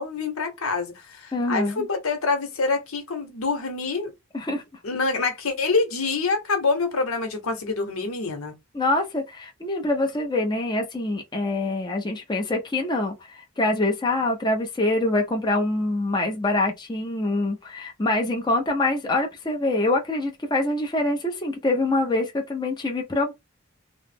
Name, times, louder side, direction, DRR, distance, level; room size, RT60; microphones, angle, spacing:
voice 1, 0.0-4.1 4.8-8.5, left 4 dB, 85° left, 0.9 m, -26 dB
voice 2, 1.3-1.9 4.3-4.6 8.7-23.3, left 2 dB, 20° left, 0.6 m, -25 dB
3.0 x 2.0 x 3.4 m
head